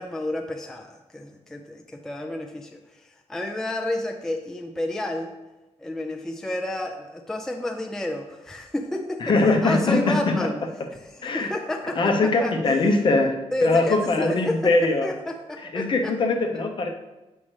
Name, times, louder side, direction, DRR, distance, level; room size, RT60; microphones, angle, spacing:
voice 1, 0.0-5.3 5.8-10.6 11.1-13.0 13.5-16.1, left 1 dB, 5° left, 2 dB, 0.3 m, -30 dB
voice 2, 9.2-10.5 11.2-11.5 12.0-13.3 13.6-15.1 15.6-16.9, left 3 dB, 45° left, 4 dB, 0.7 m, -21 dB
7.3 x 5.3 x 3.1 m, 1.1 s
wide cardioid pair, 175°, 11 cm